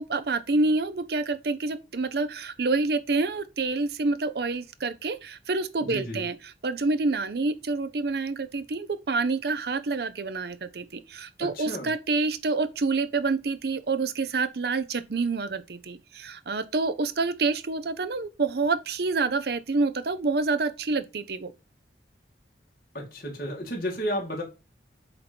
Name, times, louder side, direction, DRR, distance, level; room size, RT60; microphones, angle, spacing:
voice 1, 0.0-21.5, right 3 dB, 60° right, 0.6 m, -27 dB
voice 2, 5.8-6.2 11.4-11.9 22.9-24.4, equal, 50° left, 2.2 m, -32 dB
7.9 x 3.0 x 5.1 m
head